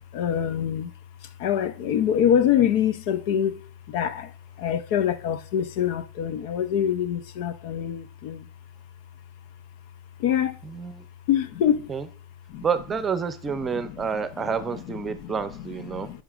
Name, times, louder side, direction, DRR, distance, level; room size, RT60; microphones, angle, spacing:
voice 1, 0.1-0.9 1.4-3.6 3.9-4.3 4.6-8.5 10.2-10.6 11.3-11.9 12.5-12.6 13.7-14.2 15.2-15.4 15.9-16.2, left 9 dB, 65° left, 0.6 m, -25 dB
voice 2, 10.6-11.0 11.9-12.1 12.6-16.1, right 6 dB, 20° right, 0.7 m, -29 dB
11.0 x 5.2 x 2.5 m
supercardioid pair, 145°, 0 cm